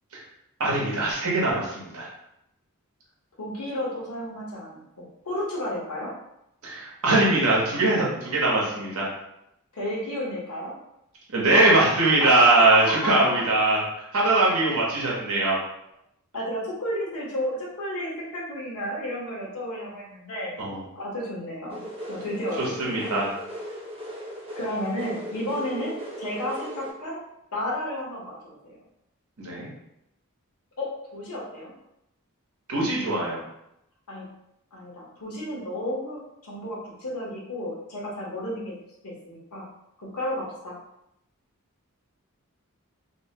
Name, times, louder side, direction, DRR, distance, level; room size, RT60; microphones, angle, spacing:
voice 1, 0.6-2.1 6.6-9.1 11.3-13.8 14.1-15.5 20.6-20.8 22.6-23.3 29.4-29.7 32.7-33.4, right 2 dB, 75° right, -4 dB, 0.9 m, -21 dB
voice 2, 3.4-6.1 9.7-10.8 12.2-13.4 16.3-20.5 20.9-23.1 24.5-27.2 27.5-28.8 30.8-31.7 34.1-34.3 34.7-38.7 39.0-39.7 40.0-40.8, left 1 dB, 90° left, -3 dB, 0.8 m, -32 dB
sound 1, 21.7-26.9, equal, 25° right, 0.5 m, -37 dB
2.6 x 2.0 x 2.8 m, 0.83 s
head